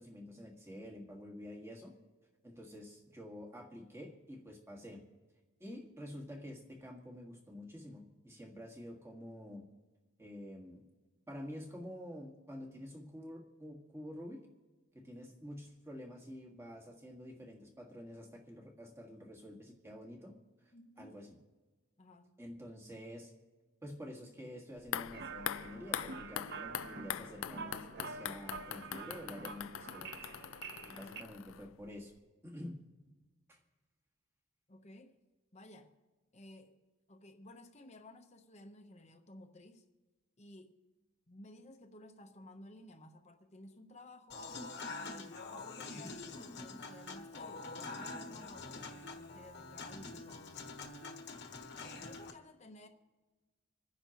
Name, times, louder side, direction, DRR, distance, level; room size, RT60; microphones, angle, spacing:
voice 1, 0.0-1.9 2.4-5.0 5.6-9.6 10.2-10.8 11.3-14.5 14.9-20.3 21.0-21.3 22.4-23.3 23.8-30.1 30.8-32.1 32.4-32.8 33.5-33.6 46.0-46.1, equal, 15° right, 0 dB, 1.7 m, -48 dB
voice 2, 20.7-21.1 22.0-22.3 30.8-31.2 34.7-35.2 35.5-35.9 36.3-36.8 37.1-39.9 40.4-40.8 41.3-44.4 44.9-51.2 51.9-52.9, left 1 dB, 35° left, 5 dB, 0.9 m, -55 dB
sound 1, 24.8-31.9 32.2-32.3, left 10 dB, 80° left, 0.4 m, -43 dB
sound 2, 25.1-31.2, right 4 dB, 55° right, 0.7 m, -47 dB
Human voice / Acoustic guitar / Piano, 44.3-52.3, left 3 dB, 55° left, 1.3 m, -46 dB
27.5 x 10.0 x 3.0 m, 1.3 s
head